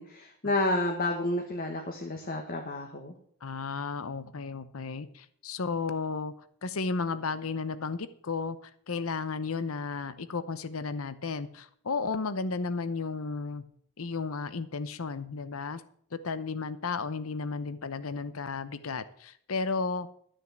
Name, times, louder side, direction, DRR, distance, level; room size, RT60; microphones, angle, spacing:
voice 1, 0.0-3.1, left 2 dB, 40° left, 2 dB, 1.4 m, -30 dB
voice 2, 3.4-6.3 6.6-13.6 14.0-15.8 16.1-20.1, left 4 dB, 65° left, 14 dB, 0.8 m, -33 dB
12.5 x 6.4 x 7.5 m, 0.63 s
head